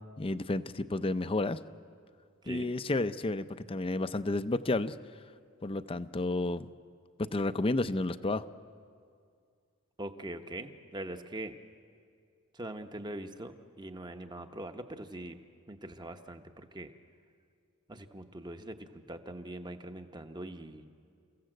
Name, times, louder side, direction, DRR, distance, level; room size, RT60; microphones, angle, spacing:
voice 1, 0.2-1.6 2.5-4.9 5.6-6.7 7.2-8.4, left 2 dB, 25° left, 13 dB, 0.5 m, -31 dB
voice 2, 10.0-11.6 12.5-15.4 15.7-16.9 17.9-20.8, right 1 dB, 20° right, 7 dB, 1.0 m, -42 dB
30.0 x 15.5 x 7.8 m, 2.2 s
head